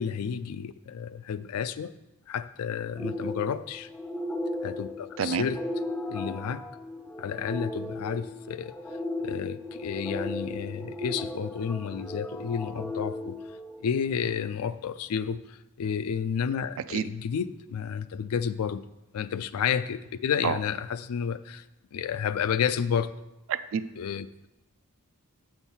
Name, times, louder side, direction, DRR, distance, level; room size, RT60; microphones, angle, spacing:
voice 1, 0.0-1.9 2.3-3.9 4.6-5.6 6.1-6.7 7.2-8.8 9.2-13.4 13.8-18.8 19.1-21.6 21.9-23.1 24.0-24.5, left 7 dB, 75° left, 0.3 m, -31 dB
sound 1, 2.9-14.3, left 1 dB, 5° left, 0.4 m, -36 dB
voice 2, 5.2-5.5 16.9-17.1 20.4-20.6 23.5-23.8, right 7 dB, 60° right, 0.3 m, -28 dB
7.1 x 4.4 x 5.5 m
head